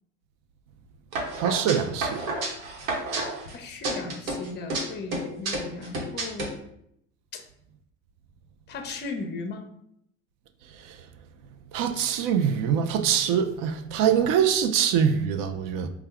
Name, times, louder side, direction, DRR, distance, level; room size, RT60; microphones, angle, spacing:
sound 1, 1.1-3.5 3.8-4.8 5.1-6.5, right 2 dB, 90° right, 1.1 m, -30 dB
voice 1, 1.3-2.2 10.9-11.0 11.7-15.9, right 8 dB, 55° right, 0.6 m, -24 dB
voice 2, 3.5-6.5 7.3-7.4 8.7-9.7, left 4 dB, 25° left, 0.6 m, -36 dB
4.5 x 2.3 x 3.5 m
hypercardioid pair, 85°, 40 cm